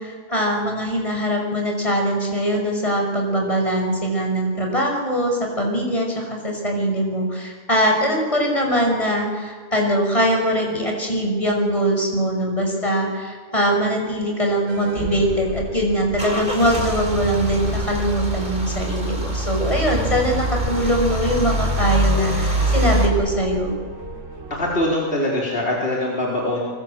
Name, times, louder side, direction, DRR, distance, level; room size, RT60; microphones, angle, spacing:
voice 1, 0.0-23.7, equal, 25° left, 1 dB, 6.2 m, -22 dB
sound 1, 14.7-25.0, right 2 dB, 65° right, 3.5 m, -34 dB
Car / Engine starting / Idling, 15.2-23.1, right 1 dB, 35° right, 5.1 m, -24 dB
voice 2, 24.5-26.6, left 1 dB, 45° left, -4 dB, 4.5 m, -23 dB
24.5 x 24.5 x 7.8 m, 1.5 s
omnidirectional pair, 1.4 m